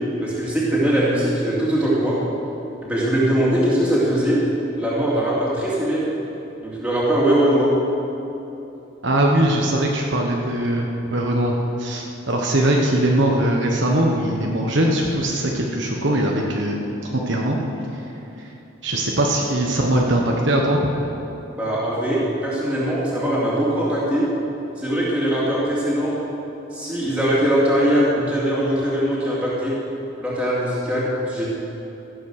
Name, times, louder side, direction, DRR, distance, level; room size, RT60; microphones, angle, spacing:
voice 1, 0.2-2.2 2.8-4.4 4.8-6.0 6.6-7.7 21.5-24.2 24.8-26.1 26.7-29.7 30.2-31.5, right 1 dB, 5° right, -8 dB, 3.1 m, -21 dB
voice 2, 9.0-17.6 18.8-20.9, right 1 dB, 60° right, -1 dB, 1.2 m, -21 dB
15.0 x 8.4 x 6.5 m, 2.9 s
head